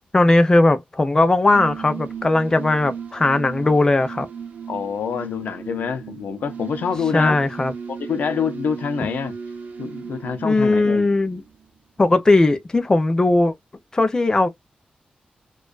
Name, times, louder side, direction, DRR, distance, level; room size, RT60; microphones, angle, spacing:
voice 1, 0.1-4.3 7.1-7.7 10.4-11.4 12.0-13.5 13.9-14.5, left 2 dB, 25° left, 0.5 m, -18 dB
sound 1, 1.4-11.8, right 7 dB, 70° right, 0.6 m, -36 dB
voice 2, 4.7-7.4 7.9-9.3 9.8-11.1, left 6 dB, 85° left, 0.5 m, -26 dB
2.4 x 2.3 x 2.3 m
wide cardioid pair, 105°, 3 cm